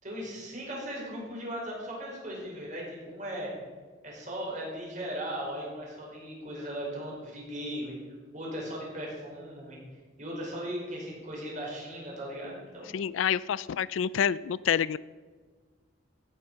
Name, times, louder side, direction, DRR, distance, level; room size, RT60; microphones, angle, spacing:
voice 1, 0.0-3.5 4.0-8.0 8.3-9.8 10.2-13.0, equal, 40° right, -3 dB, 5.4 m, -38 dB
voice 2, 12.9-15.0, left 8 dB, 85° left, 19 dB, 0.4 m, -28 dB
15.5 x 9.8 x 5.8 m, 1.5 s
head